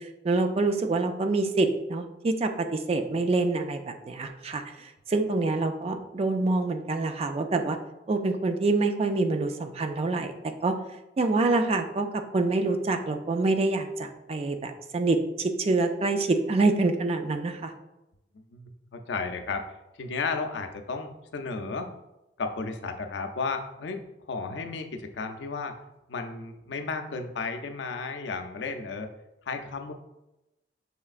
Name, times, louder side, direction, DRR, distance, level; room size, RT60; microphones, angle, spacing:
voice 1, 0.0-7.8 8.1-10.3 10.6-10.8 11.2-17.7, right 3 dB, 35° right, 7 dB, 0.3 m, -26 dB
voice 2, 18.5-19.7 20.0-21.9 22.4-24.0 24.3-25.7 26.1-29.1 29.5-29.9, left 4 dB, 85° left, 5 dB, 0.5 m, -33 dB
5.6 x 3.1 x 2.4 m, 0.94 s
head